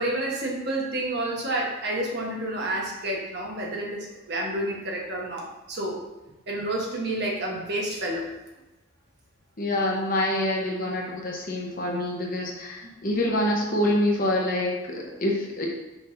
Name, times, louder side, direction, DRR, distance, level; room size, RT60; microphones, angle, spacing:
voice 1, 0.0-6.0 6.5-8.3, right 1 dB, 50° right, -2 dB, 1.2 m, -29 dB
voice 2, 9.6-15.7, left 1 dB, 40° left, -1 dB, 1.0 m, -26 dB
6.2 x 5.9 x 2.7 m, 1.0 s
head